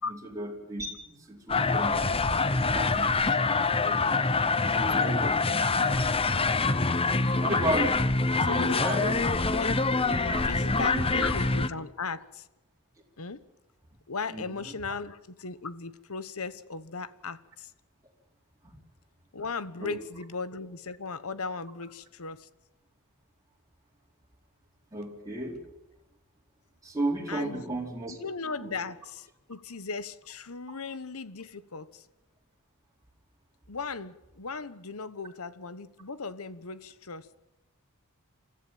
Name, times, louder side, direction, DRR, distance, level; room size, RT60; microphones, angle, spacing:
voice 1, 0.1-2.2 2.6-4.1 4.6-6.2 7.4-8.0 8.4-9.2 10.0-11.3 14.3-14.4 18.6-18.8 19.8-20.0 24.9-25.6 26.8-28.2 28.6-28.8, right 1 dB, 15° right, -2 dB, 4.5 m, -34 dB
sound 1, 1.5-11.7, left 3 dB, 25° left, 0.9 m, -25 dB
voice 2, 8.4-9.2 9.5-9.8 10.4-12.5 13.2-13.4 14.1-17.7 19.3-22.5 27.3-27.6 28.1-32.1 33.7-37.3, left 4 dB, 70° left, 15 dB, 1.2 m, -37 dB
28.5 x 14.5 x 9.0 m, 0.97 s
head